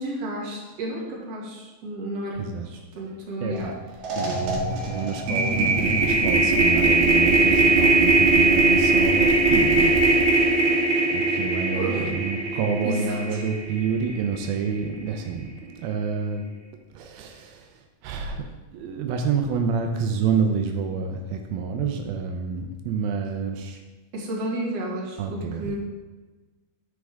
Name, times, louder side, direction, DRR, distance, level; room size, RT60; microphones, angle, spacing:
voice 1, 0.0-3.7 11.7-12.1 12.8-13.4 24.1-25.8, right 1 dB, 50° right, -4 dB, 2.8 m, -32 dB
voice 2, 3.4-3.7 4.2-10.1 11.1-16.5 16.9-17.7 18.0-18.4 18.7-23.8 25.2-25.7, right 5 dB, 85° right, 4 dB, 2.6 m, -28 dB
sound 1, 3.5-3.7 4.0-14.3, right 3 dB, 70° right, 3.0 m, -20 dB
9.7 x 7.7 x 3.5 m, 1.2 s
omnidirectional pair, 4.2 m